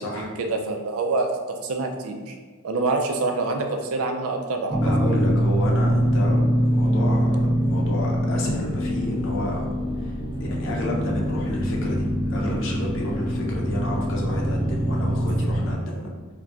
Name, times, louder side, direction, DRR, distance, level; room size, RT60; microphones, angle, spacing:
voice 1, 0.0-2.4 2.6-4.9, right 3 dB, 85° right, 4 dB, 0.4 m, -26 dB
sound 1, 4.7-15.7, equal, 20° right, 0.4 m, -24 dB
voice 2, 4.8-9.7 10.0-16.1, left 1 dB, 65° left, -1 dB, 0.6 m, -30 dB
2.3 x 2.2 x 3.8 m, 1.4 s
head